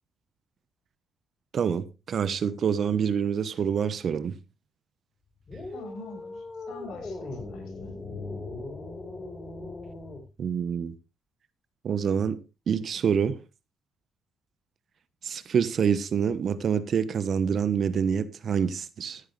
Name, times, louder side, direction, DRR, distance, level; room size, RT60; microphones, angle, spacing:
voice 1, 1.5-4.3 10.4-10.9 11.8-12.4 12.7-13.4 15.2-19.2, right 7 dB, 55° right, 1.1 m, -26 dB
sound 1, 5.5-10.3, left 2 dB, 30° left, 4.5 m, -39 dB
voice 2, 5.7-8.0, left 3 dB, 80° left, 6.2 m, -45 dB
13.5 x 11.0 x 3.3 m
cardioid pair, 90°, 0 cm